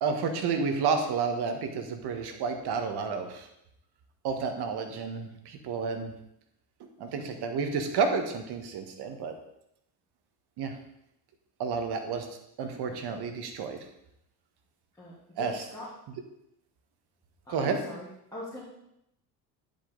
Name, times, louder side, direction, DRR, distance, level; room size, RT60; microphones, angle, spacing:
voice 1, 0.0-3.5 4.2-6.1 6.8-9.3 10.6-10.8 11.6-12.3 12.6-13.8 15.4-15.6 17.5-17.8, right 5 dB, 55° right, 6 dB, 1.4 m, -30 dB
voice 2, 15.0-15.9 17.4-18.6, left 1 dB, 5° left, -10 dB, 2.8 m, -42 dB
10.0 x 5.4 x 3.9 m, 0.79 s
supercardioid pair, 85°, 46 cm